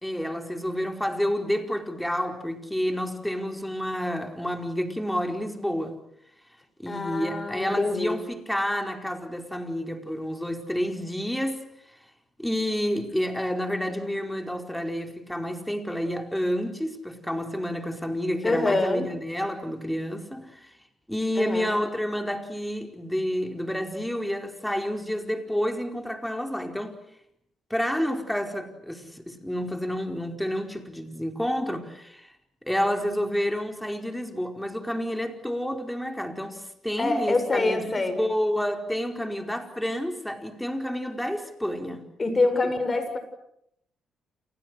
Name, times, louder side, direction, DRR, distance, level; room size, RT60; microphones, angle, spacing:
voice 1, 0.0-6.0 6.8-11.6 12.4-20.7 21.1-26.9 27.7-32.3 32.6-42.1 42.6-42.7, equal, 5° left, 4.7 m, -29 dB
voice 2, 6.9-8.2 18.4-19.1 21.4-21.7 37.0-38.2 42.2-43.2, left 3 dB, 30° left, 7.3 m, -25 dB
30.0 x 29.0 x 6.6 m
cardioid pair, 90°, 0 cm